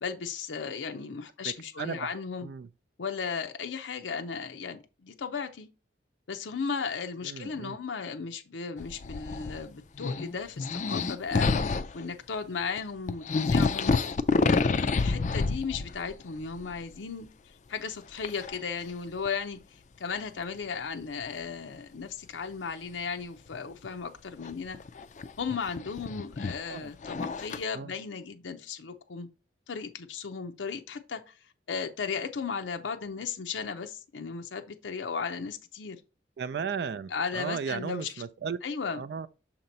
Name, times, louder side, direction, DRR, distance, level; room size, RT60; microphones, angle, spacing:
voice 1, 0.0-2.5 3.0-5.7 6.3-13.9 14.5-17.3 17.7-24.8 25.4-29.3 29.7-31.4 31.7-36.0 37.1-38.1 38.6-39.0, left 5 dB, 85° left, 0.6 m, -36 dB
voice 2, 1.4-2.2 2.4-2.7 7.2-7.8 26.7-26.9 27.7-27.9 36.4-38.6 38.9-39.3, right 6 dB, 60° right, 0.3 m, -35 dB
sound 1, 8.8-9.6 9.9-12.0 12.8-12.9 13.1-16.1 16.4-16.9 18.2-18.6 19.2-19.3 21.3-21.4 24.4-27.6, left 4 dB, 40° left, 0.4 m, -28 dB
6.5 x 2.9 x 5.2 m
head